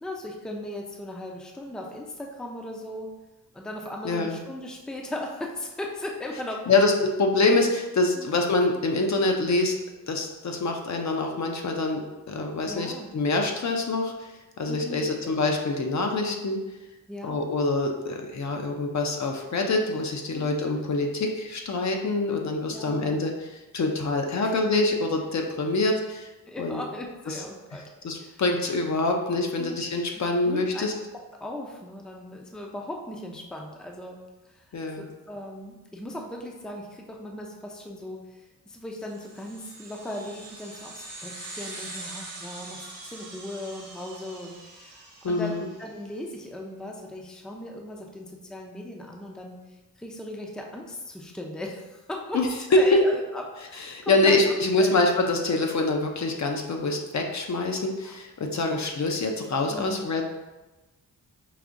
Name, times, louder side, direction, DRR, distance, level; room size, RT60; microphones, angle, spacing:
voice 1, 0.0-3.1 3.5-6.6 8.1-8.4 12.6-13.2 14.6-15.4 17.1-17.4 20.3-20.6 22.7-23.2 24.4-24.5 26.5-27.9 28.2-28.4 29.6-29.7 30.1-30.9 31.4-34.2 34.5-34.7 35.0-45.5 45.8-49.6 50.0-52.4 52.7-54.4 54.8-55.0 58.0-58.1 58.6-58.8 59.7-60.1, left 1 dB, ahead, 0 dB, 0.5 m, -37 dB
voice 2, 4.0-4.4 6.7-6.9 7.2-9.8 10.1-16.6 17.2-26.3 26.6-26.8 27.3-27.4 28.0-30.9 34.7-35.1 45.2-45.7 52.3-52.5 53.8-60.2, left 2 dB, 50° left, 2 dB, 0.6 m, -25 dB
sound 1, 39.1-45.9, right 2 dB, 40° right, 1.0 m, -43 dB
4.8 x 2.7 x 2.5 m, 1.1 s
cardioid pair, 75°, 37 cm